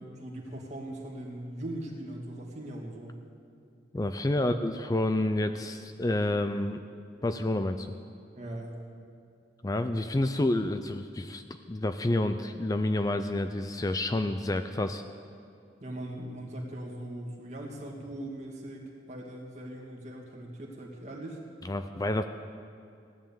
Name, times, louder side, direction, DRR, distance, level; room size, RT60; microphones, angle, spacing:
voice 1, 0.0-3.2 4.3-4.7 8.4-8.8 15.8-21.4, right 1 dB, 40° right, -1 dB, 2.4 m, -40 dB
voice 2, 3.9-6.8 7.2-7.9 9.6-15.0 21.6-22.2, left 1 dB, 20° left, 9 dB, 0.4 m, -29 dB
16.5 x 11.0 x 7.3 m, 2.5 s
head